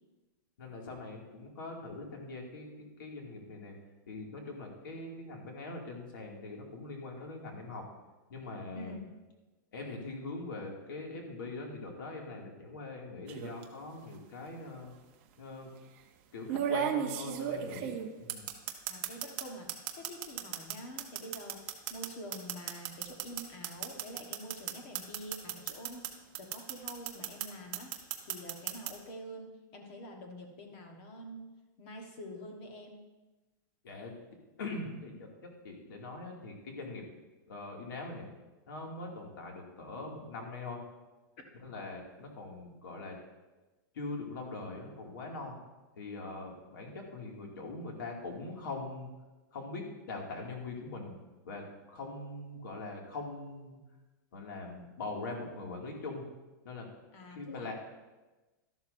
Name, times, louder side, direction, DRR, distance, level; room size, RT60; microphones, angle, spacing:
voice 1, 0.6-3.7 4.1-7.8 8.3-9.0 9.7-14.9 15.4-15.7 16.3-18.5 33.8-34.1 34.6-37.0 37.5-38.3 38.7-40.8 41.6-43.2 43.9-45.6 46.0-49.1 49.5-51.2 51.4-53.8 54.3-56.2 56.6-56.9 57.3-57.7, left 3 dB, 75° left, 0 dB, 2.4 m, -42 dB
voice 2, 8.7-9.0 17.3-17.6 18.9-31.5 31.8-33.0 57.1-57.7, equal, 30° left, 3 dB, 1.4 m, -47 dB
sound 1, 13.3-13.6 14.8-14.9 16.5-19.4 19.7-26.1 26.3-27.5 27.7-28.9, right 10 dB, 35° right, 0.8 m, -34 dB
12.5 x 11.5 x 2.7 m, 1.1 s
supercardioid pair, 180°, 11 cm